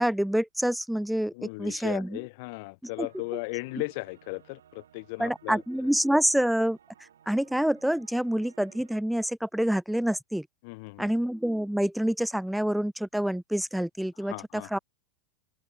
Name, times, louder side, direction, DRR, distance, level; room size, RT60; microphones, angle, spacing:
voice 1, 0.0-2.2 3.0-3.1 5.2-6.8 7.3-10.5 11.0-14.8, equal, ahead, 0.3 m, -27 dB
voice 2, 1.3-5.6 10.6-11.1 14.2-14.8, left 28 dB, 60° left, 1.4 m, -37 dB
sound 1, 2.9-9.0, right 9 dB, 85° right, 6.4 m, -58 dB
hypercardioid pair, 105°, 0 cm